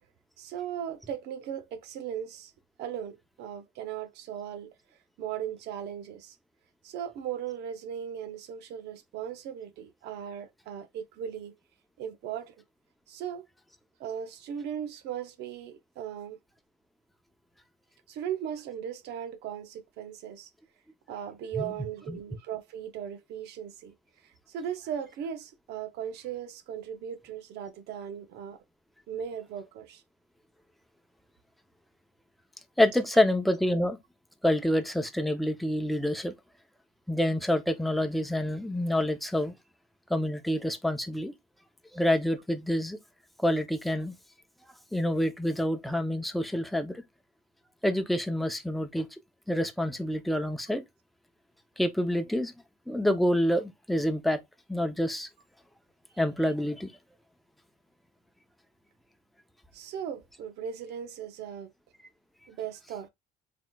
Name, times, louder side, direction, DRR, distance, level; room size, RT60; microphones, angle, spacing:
voice 1, 0.4-2.5 2.8-4.7 5.2-6.4 6.8-11.6 12.0-12.6 13.1-13.4 14.0-16.4 18.1-20.5 21.1-23.9 24.5-28.6 29.1-30.0 59.7-61.7 62.5-63.1, right 9 dB, 80° right, 0.7 m, -38 dB
voice 2, 32.8-34.0 34.4-36.3 37.1-39.5 40.1-41.3 41.9-43.0 43.4-44.2 44.9-47.0 47.8-49.1 49.5-50.8 51.8-52.5 52.9-54.4 54.7-55.3 56.2-56.9, left 1 dB, ahead, 0.7 m, -27 dB
4.1 x 3.8 x 2.3 m
cardioid pair, 110°, 17 cm